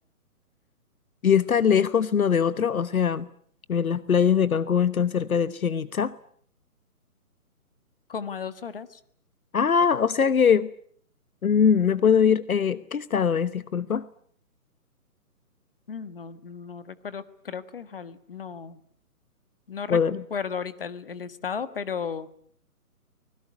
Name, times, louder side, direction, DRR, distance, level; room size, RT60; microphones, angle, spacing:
voice 1, 1.2-3.3 3.7-6.1 9.5-10.7 11.4-14.1 19.9-20.2, left 7 dB, 65° left, 16 dB, 1.1 m, -22 dB
voice 2, 8.1-9.0 15.9-18.8 19.7-20.0 20.3-22.3, left 6 dB, 40° left, 13 dB, 1.6 m, -34 dB
25.0 x 21.0 x 9.5 m, 0.63 s
hypercardioid pair, 175°, 45 cm